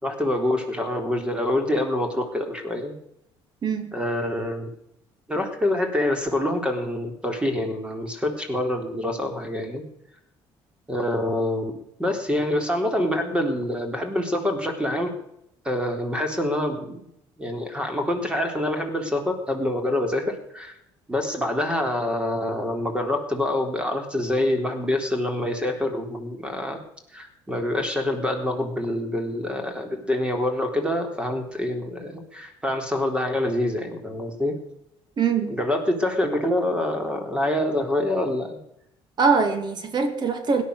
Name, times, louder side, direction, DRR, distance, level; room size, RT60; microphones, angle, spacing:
voice 1, 0.0-3.0 3.9-4.7 5.3-9.8 10.9-15.1 15.6-17.0 17.4-20.7 21.1-26.8 27.1-34.6 35.5-38.6, left 1 dB, 10° right, 3.7 m, -26 dB
voice 2, 3.6-3.9 35.2-35.5 39.2-40.6, right 5 dB, 45° right, 2.8 m, -22 dB
17.0 x 10.5 x 6.5 m
cardioid pair, 90°, 11 cm